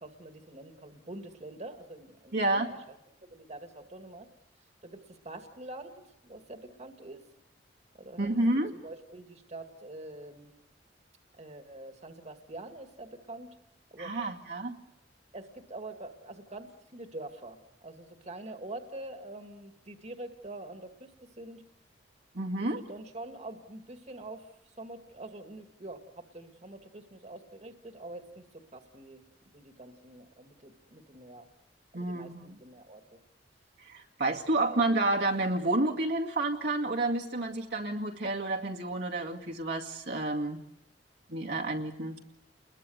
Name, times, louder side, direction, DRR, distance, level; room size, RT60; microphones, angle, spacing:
voice 1, 0.0-2.4 2.6-2.8 3.2-4.3 4.8-7.2 7.9-8.3 8.7-10.5 11.4-13.5 13.9-14.1 15.3-21.1 21.4-21.6 22.6-24.5 24.8-28.4 28.7-29.2 29.5-31.5 31.9-33.0 34.7-34.9, right 2 dB, 40° right, 5 dB, 2.1 m, -45 dB
voice 2, 2.3-2.7 8.2-8.8 14.0-14.8 22.3-22.8 31.9-32.6 33.8-40.6 41.3-42.2, right 2 dB, 65° right, 0 dB, 2.2 m, -30 dB
30.0 x 21.5 x 7.9 m, 0.83 s
head